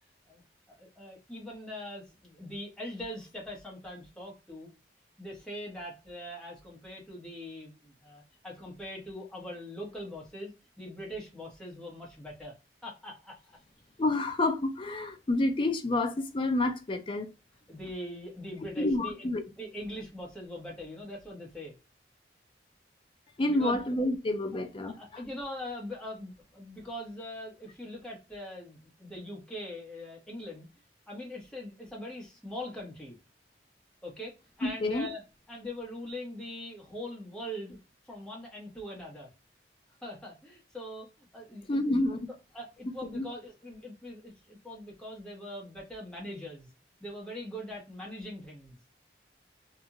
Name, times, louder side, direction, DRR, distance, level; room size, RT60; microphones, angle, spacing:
voice 1, 0.7-4.7 5.2-12.5 12.8-13.6 17.7-19.3 19.6-21.7 23.5-23.8 24.8-30.7 31.1-33.2 34.0-35.2 35.5-37.8 38.1-39.3 40.0-42.0 42.5-46.7 47.0-48.8, left 1 dB, 5° left, 1.1 m, -42 dB
voice 2, 14.0-17.3 18.8-19.4 23.4-25.2 34.8-35.1 41.7-42.2 43.1-43.2, left 2 dB, 30° left, 0.4 m, -29 dB
2.8 x 2.5 x 2.4 m
head